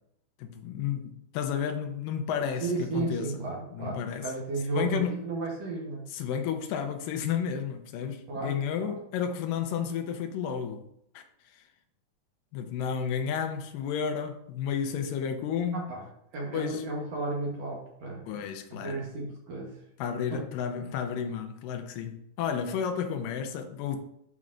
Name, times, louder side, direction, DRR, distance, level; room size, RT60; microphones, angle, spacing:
voice 1, 0.4-3.4 3.7-4.3 4.7-5.2 6.1-10.8 11.1-11.2 11.5-11.6 12.5-15.8 16.5-16.9 18.3-19.1 20.0-24.0, left 7 dB, 85° left, 2.4 m, -32 dB
voice 2, 2.6-6.1 8.3-8.9 15.7-16.0 16.3-18.4 18.8-19.8 20.3-20.4, right 3 dB, 60° right, 1.9 m, -34 dB
11.0 x 5.4 x 2.5 m
omnidirectional pair, 3.9 m